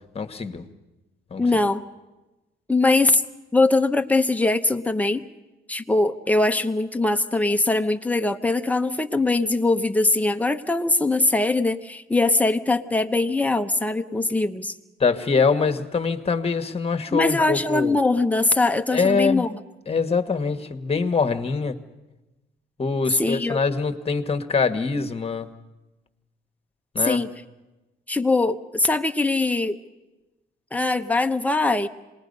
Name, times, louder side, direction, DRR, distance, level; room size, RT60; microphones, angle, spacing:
voice 1, 0.1-0.6 1.3-1.5 15.0-18.0 18.9-19.4 19.9-21.8 22.8-25.5 26.9-27.2, left 4 dB, 30° left, 8 dB, 1.5 m, -24 dB
voice 2, 1.4-1.8 2.7-3.2 3.5-5.2 5.7-14.7 17.1-19.6 23.2-23.6 27.0-27.3 28.1-29.8 30.7-31.9, left 2 dB, 5° left, 7 dB, 1.0 m, -22 dB
27.0 x 20.5 x 5.4 m, 1.1 s
cardioid pair, 90°, 20 cm